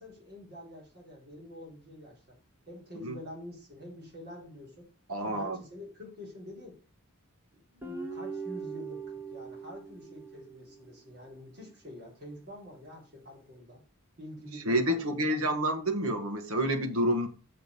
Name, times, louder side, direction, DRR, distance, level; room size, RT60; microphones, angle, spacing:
voice 1, 0.0-2.2 2.7-4.9 5.2-6.8 7.7-13.8 14.2-15.6, left 1 dB, 50° right, 4.2 m, -47 dB
voice 2, 5.1-5.6 14.6-17.3, equal, 70° right, 1.5 m, -28 dB
Guitar, 7.8-11.1, right 4 dB, 10° right, 1.4 m, -41 dB
7.0 x 5.1 x 6.6 m
head